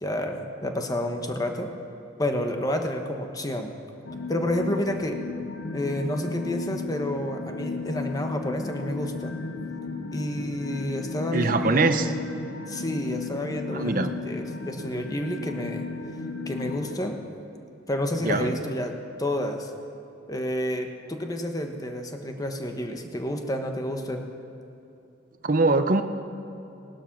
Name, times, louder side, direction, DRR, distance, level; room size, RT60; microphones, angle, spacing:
voice 1, 0.0-1.7 2.2-3.7 4.3-5.2 5.7-9.3 10.1-12.2 12.7-15.9 16.5-17.2 17.9-19.7 20.3-24.3, left 1 dB, 20° left, 4 dB, 1.1 m, -30 dB
sound 1, 4.0-17.0, left 4 dB, 80° left, 1.0 m, -35 dB
voice 2, 11.3-12.1 13.7-14.1 18.2-18.5 25.4-26.0, right 3 dB, 45° right, 9 dB, 0.7 m, -22 dB
18.0 x 12.0 x 5.9 m, 2.8 s
head